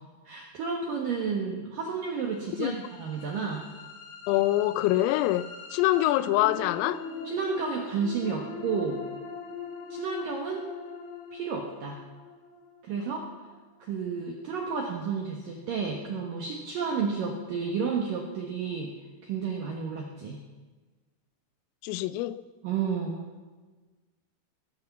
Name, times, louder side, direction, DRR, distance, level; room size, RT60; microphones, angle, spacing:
voice 1, 0.3-3.6 7.3-9.0 9.9-10.6 11.3-12.0 12.8-13.3 13.8-18.9 19.2-20.4 22.6-23.3, right 5 dB, 70° right, 2.1 m, -31 dB
sound 1, 2.3-14.3, left 4 dB, 65° left, 6.4 m, -42 dB
voice 2, 4.3-7.1 21.8-22.4, left 15 dB, 85° left, 3.3 m, -25 dB
19.0 x 8.6 x 7.2 m
omnidirectional pair, 5.8 m